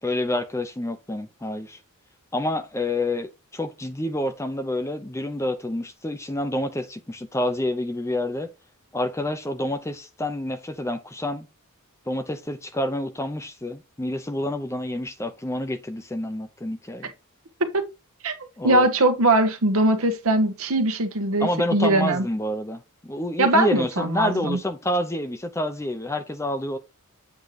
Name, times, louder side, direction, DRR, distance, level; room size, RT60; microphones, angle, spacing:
voice 1, 0.0-1.8 2.3-8.5 8.9-11.5 12.1-17.1 18.6-18.9 21.4-26.8, left 1 dB, 15° left, 0.6 m, -28 dB
voice 2, 18.6-22.3 23.4-24.6, right 2 dB, 70° right, 1.1 m, -21 dB
8.2 x 2.9 x 4.9 m
head